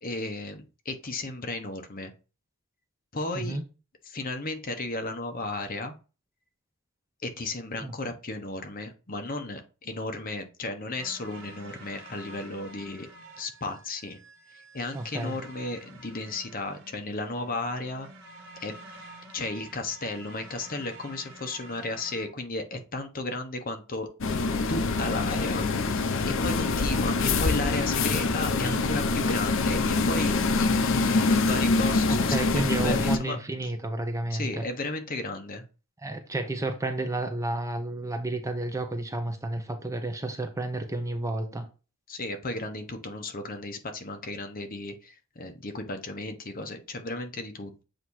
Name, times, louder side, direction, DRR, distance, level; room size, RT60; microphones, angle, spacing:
voice 1, 0.0-2.1 3.1-3.6 4.1-6.0 7.2-13.1 13.4-14.2 14.5-18.1 18.6-18.7 19.3-24.1 24.7-33.4 34.3-35.6 42.1-47.8, left 2 dB, 45° left, 1.1 m, -34 dB
sound 1, 10.9-22.3, right 2 dB, 60° right, 1.7 m, -48 dB
voice 2, 14.9-15.4 32.1-34.6 36.0-41.6, right 2 dB, 15° right, 0.8 m, -31 dB
sound 2, 24.2-33.2, left 3 dB, 65° left, 0.7 m, -25 dB
7.7 x 2.8 x 4.7 m
head